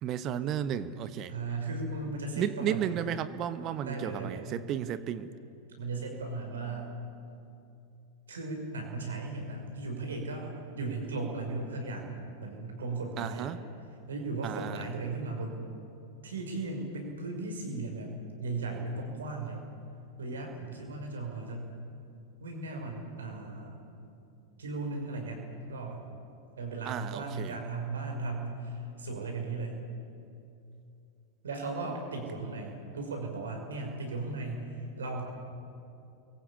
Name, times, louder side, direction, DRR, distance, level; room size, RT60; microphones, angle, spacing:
voice 1, 0.0-1.3 2.4-5.3 13.2-13.6 14.4-14.9 26.8-27.5, right 9 dB, 35° right, 13 dB, 1.3 m, -33 dB
voice 2, 1.3-3.0 3.8-4.5 5.8-6.9 8.3-13.5 14.1-15.7 16.2-18.1 18.4-19.6 20.2-21.7 22.4-23.8 24.6-26.0 26.6-29.8 31.4-35.2, right 3 dB, 70° right, 2 dB, 5.7 m, -36 dB
30.0 x 22.5 x 8.6 m, 2.7 s
figure-of-eight pair, 90°, 0 cm